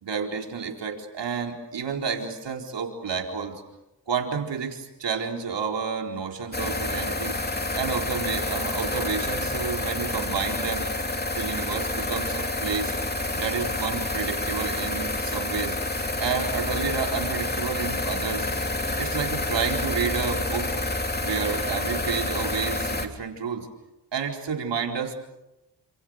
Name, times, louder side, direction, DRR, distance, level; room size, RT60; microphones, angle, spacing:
voice 1, 0.0-3.6 4.1-7.4 7.8-10.8 11.3-12.9 13.3-15.8 16.2-18.5 19.0-20.7 21.2-23.7 24.1-25.1, right 6 dB, 80° right, 2 dB, 4.4 m, -30 dB
sound 1, 6.5-23.1, left 2 dB, 25° left, 3.0 m, -28 dB
29.5 x 27.0 x 6.6 m, 0.95 s
cardioid pair, 70°, 42 cm